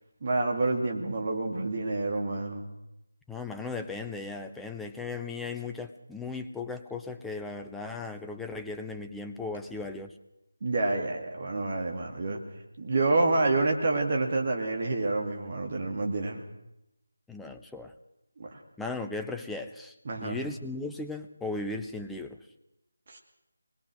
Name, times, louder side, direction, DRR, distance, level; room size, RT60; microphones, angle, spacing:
voice 1, 0.2-2.6 10.6-12.4 12.8-16.4 18.4-18.6 20.1-20.4 23.1-23.2, right 2 dB, 35° right, 2 dB, 2.4 m, -28 dB
voice 2, 3.3-10.1 17.3-17.9 18.8-22.4, left 3 dB, 5° left, 5 dB, 0.8 m, -37 dB
25.0 x 21.0 x 6.3 m, 0.88 s
figure-of-eight pair, 160°, 0 cm